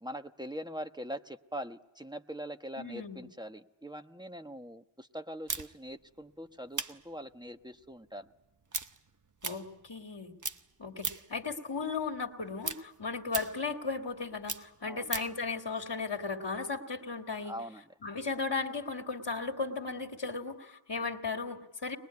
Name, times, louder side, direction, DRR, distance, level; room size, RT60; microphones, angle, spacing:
voice 1, 0.0-8.3 14.8-15.1 17.4-17.8, equal, 10° right, 7 dB, 1.1 m, -42 dB
voice 2, 2.8-3.2 9.4-10.3 10.8-17.5 18.0-22.0, left 4 dB, 70° left, 2 dB, 2.0 m, -36 dB
sound 1, 5.5-10.1 10.4-11.4 11.8-15.4, right 4 dB, 45° right, 1.0 m, -39 dB
23.5 x 21.0 x 9.6 m, 0.91 s
wide cardioid pair, 50°, 42 cm